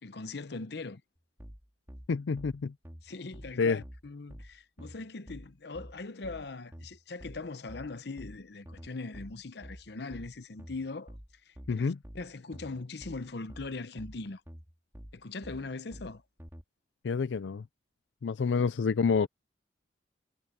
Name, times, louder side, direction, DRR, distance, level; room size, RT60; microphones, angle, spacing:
voice 1, 0.0-1.0 3.0-11.1 11.5-14.4 15.1-16.2, left 3 dB, 65° left, 0.8 m, -41 dB
sound 1, 1.4-16.6, equal, 15° right, 4.5 m, -48 dB
voice 2, 2.1-2.7 3.6-3.8 11.7-12.0 17.0-17.6 18.2-19.3, left 5 dB, 90° left, 0.4 m, -28 dB
head